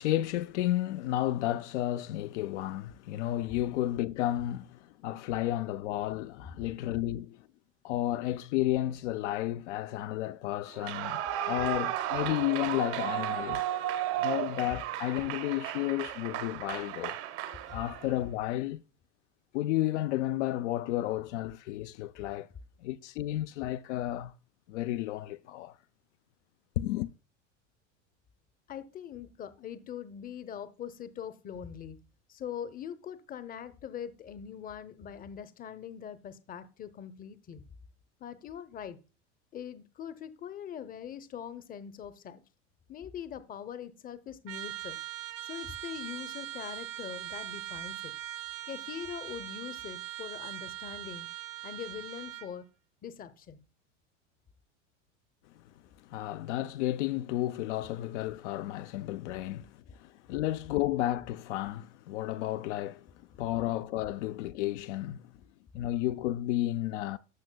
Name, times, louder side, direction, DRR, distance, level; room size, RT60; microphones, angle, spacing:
voice 1, 0.0-7.5 7.8-11.2 11.5-13.6 14.2-17.2 17.7-18.8 19.5-22.5 22.8-24.3 24.7-25.8 26.8-27.1 56.1-63.1 63.4-65.2 65.7-67.2, left 14 dB, 65° left, 0.5 m, -32 dB
Clapping / Cheering / Applause, 10.7-18.2, right 12 dB, 60° right, 0.9 m, -34 dB
voice 2, 28.7-32.0 32.3-37.6 38.2-39.0 39.5-42.4 42.9-45.0 45.4-48.1 48.7-51.3 51.6-52.7 53.0-53.6, left 9 dB, 25° left, 0.7 m, -42 dB
Trumpet, 44.5-52.5, right 15 dB, 75° right, 1.1 m, -41 dB
13.0 x 5.9 x 2.2 m
hypercardioid pair, 95°, 38 cm